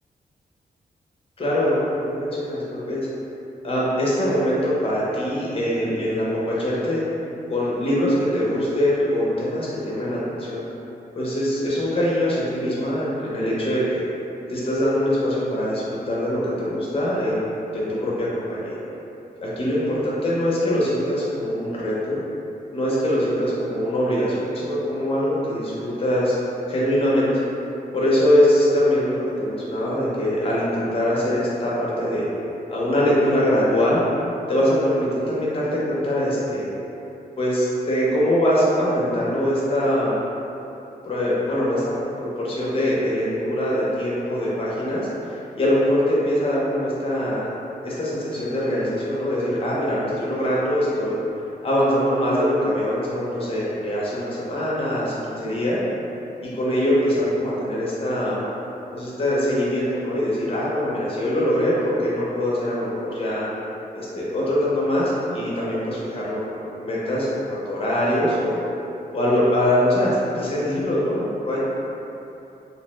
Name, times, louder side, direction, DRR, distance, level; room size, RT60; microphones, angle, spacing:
voice 1, 1.4-3.1 3.6-7.0 7.5-10.6 11.1-14.0 14.5-17.4 17.7-18.8 19.4-22.2 22.7-26.3 26.7-27.3 27.9-32.3 32.7-34.0 34.5-36.7 37.4-40.2 41.0-47.5 47.8-51.2 51.6-55.8 56.6-58.4 58.9-63.5 63.9-68.6 69.1-71.6, equal, 35° left, -7 dB, 0.6 m, -23 dB
2.8 x 2.1 x 2.9 m, 2.9 s
wide cardioid pair, 175°, 16 cm